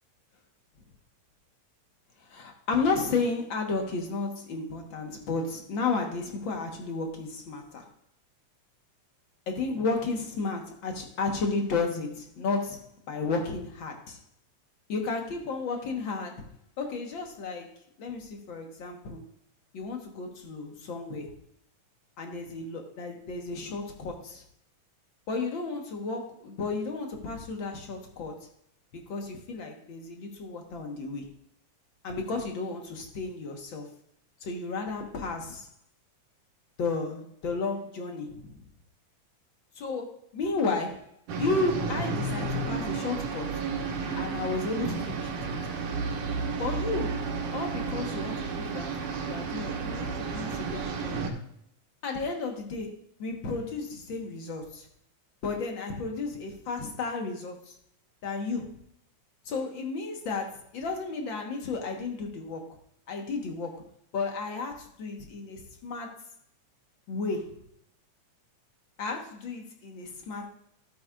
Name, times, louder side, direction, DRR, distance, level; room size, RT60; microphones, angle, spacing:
voice 1, 2.2-7.9 9.5-14.2 14.9-16.4 16.8-17.7 18.0-19.3 19.7-21.4 22.2-24.4 25.3-28.5 28.9-31.3 32.0-33.9 34.4-35.7 36.8-38.6 39.7-41.1 41.4-43.6 44.1-45.8 46.6-47.2 47.5-49.0 49.3-51.3 52.0-54.9 55.4-57.7 58.2-58.7 59.4-62.8 63.1-63.9 64.1-66.3 67.1-67.5 69.0-70.5, left 3 dB, 50° left, 3 dB, 1.6 m, -33 dB
sound 1, 41.3-51.3, right 4 dB, 80° right, 2.7 m, -32 dB
12.5 x 8.6 x 2.4 m, 0.70 s
omnidirectional pair, 3.5 m